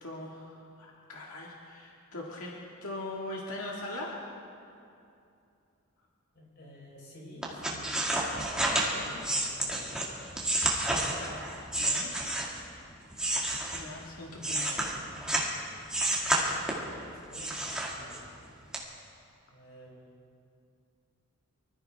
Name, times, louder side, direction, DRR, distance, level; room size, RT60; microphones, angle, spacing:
voice 1, 0.0-2.5 2.8-4.3 8.9-9.2 10.9-12.2 13.7-15.0, left 2 dB, 90° left, -3 dB, 1.9 m, -41 dB
voice 2, 6.3-8.0 8.9-9.8 14.2-15.0 16.5-18.3 19.5-20.0, left 1 dB, 50° left, -3 dB, 4.3 m, -51 dB
sound 1, 7.4-12.7 13.1-15.5 15.9-16.9 17.3-18.4 18.7-18.8, right 1 dB, 5° right, 1.9 m, -30 dB
25.0 x 14.5 x 3.5 m, 2.6 s
head